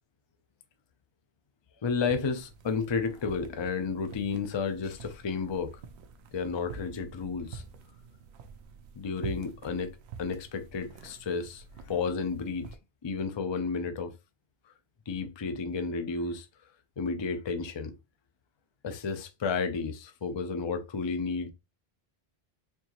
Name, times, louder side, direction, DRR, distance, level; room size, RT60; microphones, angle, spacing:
voice 1, 1.8-5.8 6.3-7.6 8.9-12.7 13.0-14.1 15.1-16.5 17.0-17.9 18.8-21.5, left 5 dB, 35° left, 0.4 m, -32 dB
sound 1, 2.0-12.8, right 5 dB, 90° right, 0.9 m, -47 dB
4.5 x 2.8 x 2.9 m
omnidirectional pair, 1.1 m